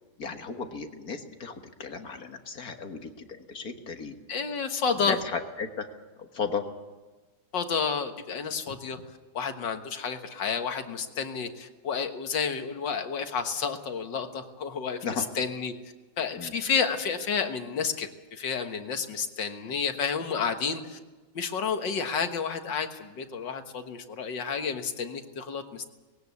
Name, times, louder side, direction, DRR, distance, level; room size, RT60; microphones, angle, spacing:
voice 1, 0.2-4.2 5.1-5.9 6.3-6.7 15.0-15.3 16.3-16.5, left 5 dB, 50° left, 5 dB, 1.9 m, -35 dB
voice 2, 4.3-5.2 7.5-9.0 9.3-15.7 16.2-21.0 21.3-25.9, left 6 dB, 65° left, 6 dB, 2.1 m, -30 dB
20.0 x 17.0 x 8.3 m, 1.2 s
omnidirectional pair, 2.2 m